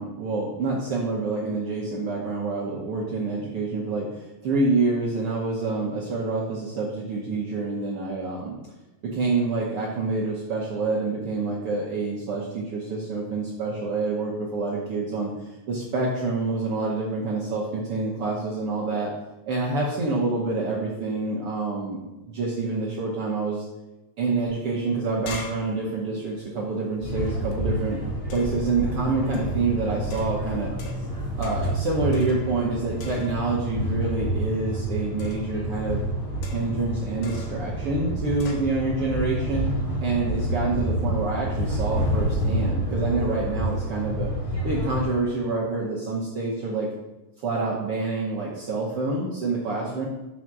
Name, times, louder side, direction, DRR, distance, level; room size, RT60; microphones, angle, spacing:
voice 1, 0.0-8.6 9.0-19.1 19.5-23.6 24.2-28.0 28.3-30.7 31.4-36.0 36.5-39.7 40.0-44.3 44.6-46.9 47.4-50.1, right 3 dB, 80° right, -4 dB, 1.2 m, -27 dB
sound 1, 24.5-24.6 24.8-27.6 28.3-28.7 29.3-29.6 30.1-31.1 31.4-31.8 32.1-32.7 33.0-33.6 35.2-35.5 36.4-36.8 37.2-37.6 38.4-38.7, left 4 dB, 75° left, 2.6 m, -42 dB
sound 2, 27.0-45.1, right 1 dB, 10° right, 2.1 m, -28 dB
5.4 x 4.8 x 6.0 m, 1.0 s
omnidirectional pair, 3.9 m